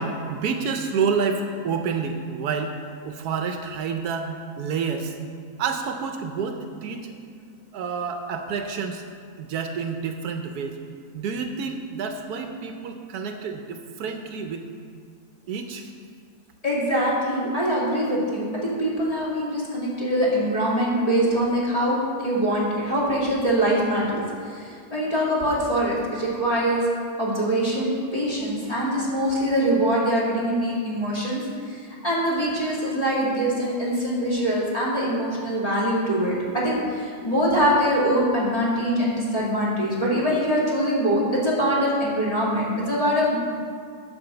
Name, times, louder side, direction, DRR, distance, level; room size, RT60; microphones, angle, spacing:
voice 1, 0.0-2.8 3.0-5.1 5.6-7.1 7.7-9.0 9.4-10.8 11.1-14.6 15.5-15.9, right 5 dB, 75° right, 5 dB, 1.2 m, -28 dB
voice 2, 16.6-26.8 27.2-43.4, equal, 20° left, -7 dB, 2.4 m, -23 dB
9.6 x 5.3 x 6.9 m, 2.2 s
omnidirectional pair, 1.7 m